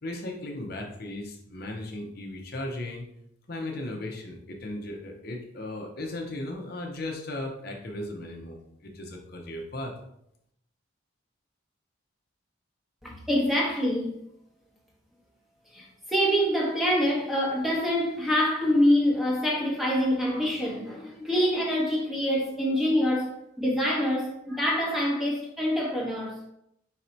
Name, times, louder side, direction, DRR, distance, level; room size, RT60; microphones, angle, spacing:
voice 1, 0.0-3.1 3.5-9.9, left 1 dB, 50° left, 0.6 m, -36 dB
voice 2, 13.0-14.2 15.7-26.4, equal, ahead, 0.8 m, -25 dB
4.0 x 2.6 x 4.3 m
head